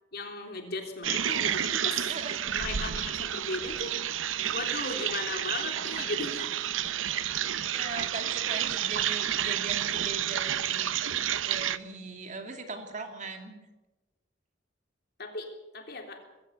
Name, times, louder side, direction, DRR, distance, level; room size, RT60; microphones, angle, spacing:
voice 1, 0.1-2.2 2.5-3.9 4.5-6.4 15.2-16.2, left 3 dB, 55° left, 3 dB, 3.6 m, -36 dB
sound 1, 1.0-11.8, right 10 dB, 90° right, 0.7 m, -30 dB
voice 2, 2.1-2.9 4.8-5.0 5.8-6.3 7.6-11.1 11.5-13.6, right 3 dB, 40° right, 5 dB, 2.6 m, -40 dB
21.0 x 16.5 x 8.2 m, 1.1 s
head